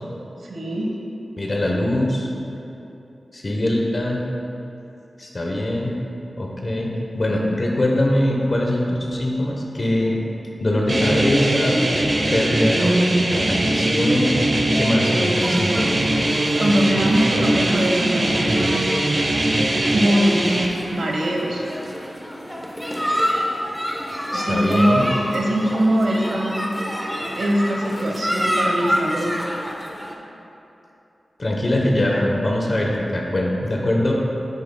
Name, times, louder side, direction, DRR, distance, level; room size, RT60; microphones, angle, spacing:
voice 1, 0.4-0.9 16.5-18.9 19.9-20.5 20.9-21.6 24.3-26.7 27.4-29.3, equal, 85° right, -1 dB, 1.1 m, -22 dB
voice 2, 1.4-2.3 3.3-4.2 5.2-5.9 6.4-10.2 10.6-11.8 12.3-16.1 24.3-25.0 31.4-34.1, left 1 dB, 40° left, -1 dB, 1.0 m, -22 dB
sound 1, 10.9-20.7, right 1 dB, 45° right, 0.8 m, -21 dB
sound 2, 15.3-30.1, equal, ahead, 0.8 m, -28 dB
9.4 x 8.5 x 2.3 m, 2.9 s
wide cardioid pair, 100°, 0 cm